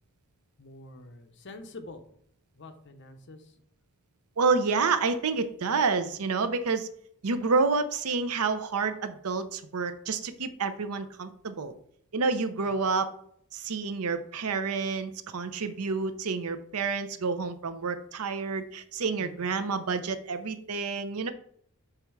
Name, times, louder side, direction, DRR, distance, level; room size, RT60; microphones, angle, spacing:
voice 1, 0.6-2.0 2.5-3.5 19.2-19.4, left 2 dB, 55° left, 7 dB, 0.8 m, -46 dB
voice 2, 4.4-6.9 7.2-11.7 12.1-13.1 13.5-21.3, right 4 dB, 85° right, 10 dB, 0.7 m, -29 dB
6.8 x 3.5 x 4.6 m, 0.67 s
head